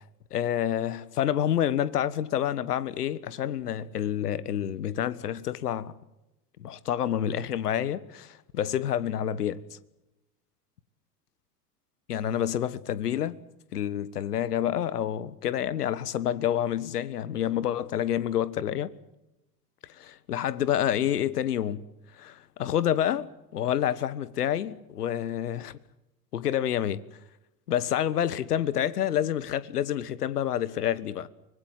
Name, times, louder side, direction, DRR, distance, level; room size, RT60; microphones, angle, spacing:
voice 1, 0.3-5.9 6.6-9.6 12.1-13.4 13.7-18.9 19.9-21.8 22.1-25.8 26.3-27.0 27.7-31.3, left 10 dB, 65° left, 1.5 m, -28 dB
25.0 x 21.0 x 7.5 m
figure-of-eight pair, 85°, 49 cm